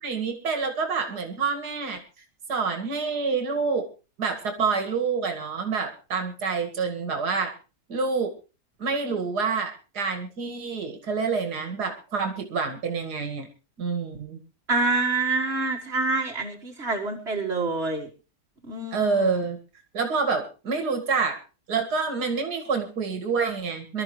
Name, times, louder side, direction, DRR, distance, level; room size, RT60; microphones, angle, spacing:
voice 1, 0.0-2.0 2.5-3.9 4.2-7.5 7.9-8.3 8.8-13.5 13.8-14.4 18.9-19.6 19.9-21.4 21.7-24.0, right 5 dB, 75° right, 5 dB, 2.7 m, -27 dB
voice 2, 14.7-18.1 18.7-19.4, right 3 dB, 40° right, -2 dB, 2.1 m, -27 dB
24.0 x 13.0 x 3.2 m, 0.33 s
omnidirectional pair, 1.7 m